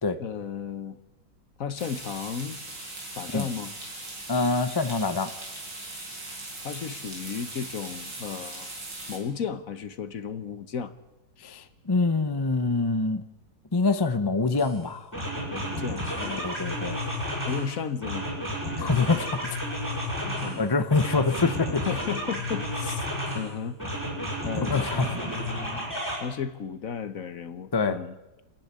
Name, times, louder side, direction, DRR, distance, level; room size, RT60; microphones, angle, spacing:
voice 1, 0.2-1.0 1.6-2.6 3.2-3.7 6.6-8.7 9.1-10.9 15.5-16.5 17.5-18.3 20.2-20.6 21.9-23.1 23.3-23.8 24.2-24.9 26.2-28.1, left 7 dB, 50° left, 12 dB, 1.3 m, -34 dB
sound 1, 1.8-9.2, right 2 dB, 65° right, 5.5 m, -39 dB
voice 2, 4.3-5.3 11.4-13.2 13.7-15.1 16.4-17.0 18.8-19.6 20.6-21.8 24.6-25.1 27.7-28.0, left 3 dB, 35° left, 10 dB, 0.4 m, -25 dB
sound 2, 14.6-14.7 15.1-17.7 18.0-20.6 20.9-23.4 23.8-26.2, equal, 10° right, 8.0 m, -31 dB
28.0 x 10.5 x 9.8 m, 1.1 s
omnidirectional pair, 2.1 m